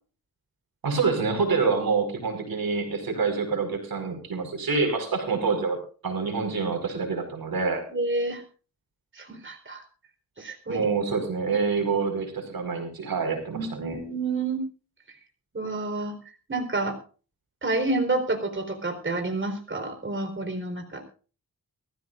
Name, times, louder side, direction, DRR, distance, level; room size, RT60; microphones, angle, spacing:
voice 1, 0.8-5.8 6.0-7.8 10.7-14.0, right 4 dB, 75° right, 5 dB, 4.8 m, -26 dB
voice 2, 7.9-8.4 9.1-9.8 10.4-10.9 13.5-14.6 15.5-16.1 16.5-17.0 17.6-21.0, right 2 dB, 35° right, 6 dB, 4.2 m, -29 dB
23.0 x 14.5 x 2.5 m, 0.37 s
cardioid pair, 60°, 36 cm